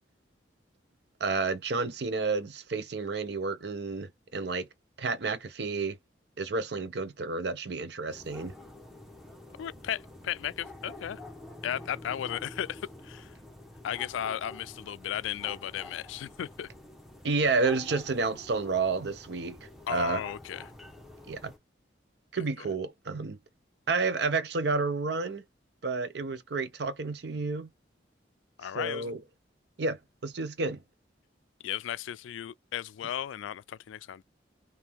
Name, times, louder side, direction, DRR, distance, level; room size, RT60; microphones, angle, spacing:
voice 1, 1.2-4.7 5.0-6.0 6.4-8.5 17.2-19.6 19.9-20.2 21.3-21.5 22.3-23.4 23.9-25.4 25.8-27.7 28.7-29.2 29.8-30.8, right 4 dB, 60° right, 0.6 m, -30 dB
sound 1, 8.1-21.6, left 2 dB, ahead, 0.8 m, -48 dB
voice 2, 9.6-11.2 11.6-13.3 13.8-16.7 19.9-20.7 28.6-29.1 31.6-34.2, left 10 dB, 85° left, 0.3 m, -35 dB
3.6 x 2.8 x 4.5 m
head